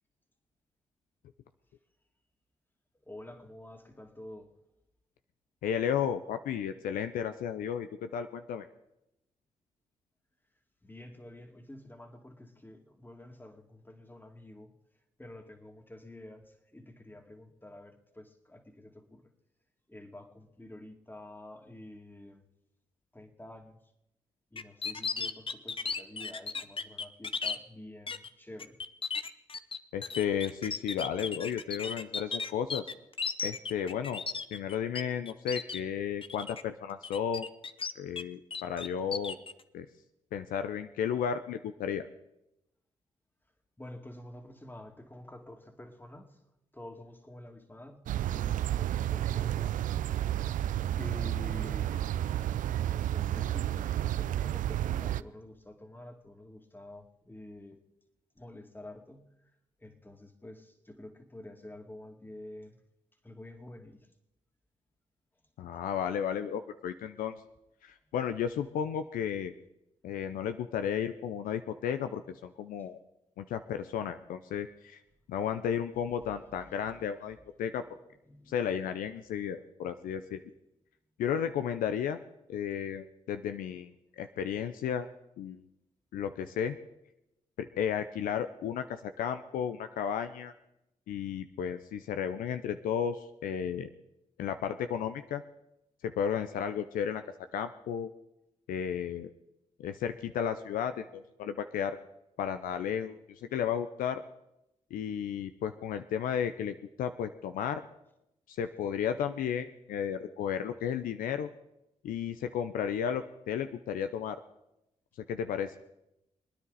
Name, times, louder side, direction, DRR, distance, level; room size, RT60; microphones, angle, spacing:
voice 1, 3.0-4.5 10.8-14.7 15.2-19.3 19.9-22.4 23.1-23.8 24.5-28.8 43.8-46.5 46.7-49.9 51.0-52.2 52.8-57.8 58.4-59.3 59.8-62.8 63.2-64.1 76.2-76.9 78.1-78.5, left 1 dB, 15° left, 5 dB, 2.3 m, -49 dB
voice 2, 5.6-8.7 29.9-32.8 33.4-34.2 34.5-37.5 38.0-39.4 39.7-39.9 40.3-42.1 65.6-67.4 67.8-69.5 70.0-73.0 73.4-75.0 75.3-77.8 78.5-80.4 81.2-82.2 82.5-83.9 84.2-85.1 85.4-85.6 86.1-86.8 87.6-90.5 91.1-93.9 94.4-95.4 96.0-97.2 97.5-98.1 98.7-99.3 99.8-102.0 102.4-103.2 103.5-104.2 104.9-107.8 108.5-111.5 112.0-114.4 115.3-115.7, left 8 dB, 80° left, 9 dB, 0.6 m, -33 dB
sound 1, 24.6-27.6 28.1-28.3 28.6-35.0 35.3-35.8 36.2-36.6 37.0-38.2 38.5-39.5, left 5 dB, 40° left, 0.8 m, -35 dB
sound 2, 48.1-55.2, right 12 dB, 70° right, 0.4 m, -31 dB
24.0 x 9.8 x 4.1 m, 0.86 s
hypercardioid pair, 45°, 14 cm